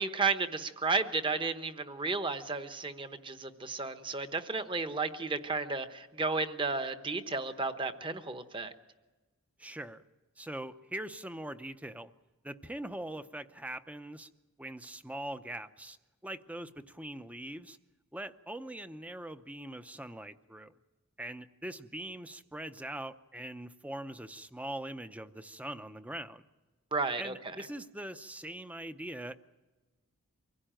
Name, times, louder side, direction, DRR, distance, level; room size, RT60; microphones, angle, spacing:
voice 1, 0.0-8.7 26.9-27.5, right 4 dB, 20° right, 9 dB, 1.0 m, -33 dB
voice 2, 9.6-10.0 10.4-12.1 12.4-14.3 14.6-16.0 16.2-17.8 18.1-20.7 21.2-26.4 27.2-29.4, right 1 dB, 5° right, 11 dB, 0.6 m, -42 dB
24.5 x 16.0 x 9.0 m, 1.2 s
head